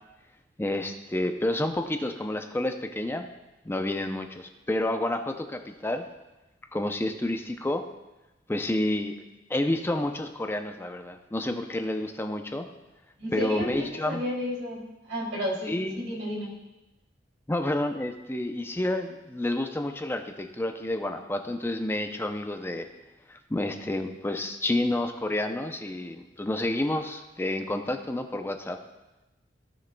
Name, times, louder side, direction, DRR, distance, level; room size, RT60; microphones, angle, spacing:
voice 1, 0.6-3.3 3.7-6.0 6.7-7.8 8.5-9.1 9.5-12.7 13.3-14.2 15.7-16.0 17.5-22.9 23.3-28.8, left 1 dB, 15° left, 6 dB, 0.5 m, -29 dB
voice 2, 13.2-16.5, equal, 85° right, -4 dB, 2.8 m, -32 dB
16.5 x 6.3 x 2.2 m, 1.0 s
head